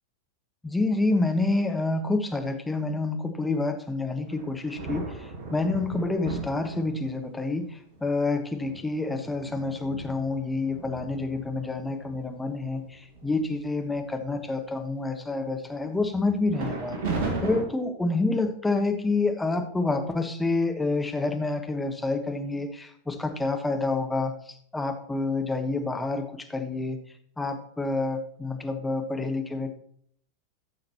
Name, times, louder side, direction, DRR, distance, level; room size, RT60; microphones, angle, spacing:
voice 1, 0.6-17.0 17.4-27.0 27.4-29.8, left 3 dB, 10° left, 5 dB, 1.2 m, -28 dB
sound 1, 4.3-7.3 8.0-8.1 8.5-12.2 12.7-12.8 13.1-13.6 13.9-14.7 16.5-17.6, right 3 dB, 50° right, 1.9 m, -36 dB
14.0 x 6.5 x 3.0 m, 0.64 s
figure-of-eight pair, 90°, 0 cm